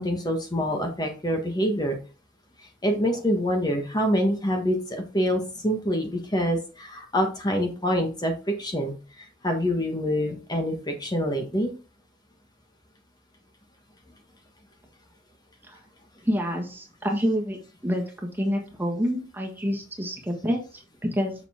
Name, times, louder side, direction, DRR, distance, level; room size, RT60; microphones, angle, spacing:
voice 1, 0.0-2.0 2.8-8.3 8.6-11.7, equal, 20° left, 3 dB, 1.4 m, -26 dB
voice 2, 16.2-18.0 18.4-21.3, equal, 10° right, 1 dB, 1.6 m, -27 dB
6.9 x 6.8 x 3.6 m, 0.33 s
head